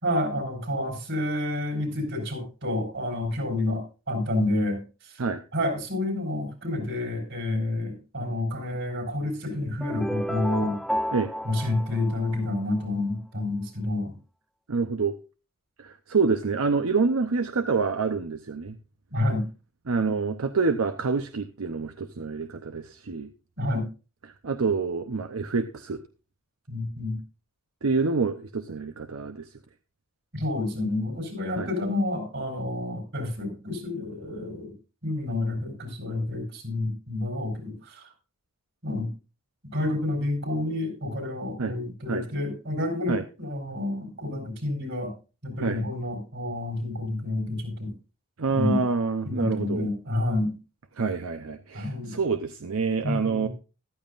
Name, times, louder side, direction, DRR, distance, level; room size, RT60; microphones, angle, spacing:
voice 1, 0.0-5.2 5.5-10.8 11.4-14.1 19.1-19.5 23.6-23.9 26.7-27.2 30.3-34.7 35.0-38.1 38.8-39.1 39.6-45.1 45.4-47.9 48.5-48.8 49.2-50.6 51.7-52.2 53.0-53.5, left 1 dB, 60° right, 4 dB, 4.6 m, -29 dB
sound 1, 9.8-12.9, equal, ahead, 0.5 m, -32 dB
voice 2, 14.7-15.1 15.8-18.8 19.9-23.3 24.4-26.0 27.8-29.4 31.6-31.7 41.6-41.7 42.1-42.3 43.1-43.2 45.6-45.8 48.4-49.9 51.0-53.5, right 4 dB, 85° right, 8 dB, 0.7 m, -27 dB
14.0 x 12.5 x 2.5 m, 0.32 s
head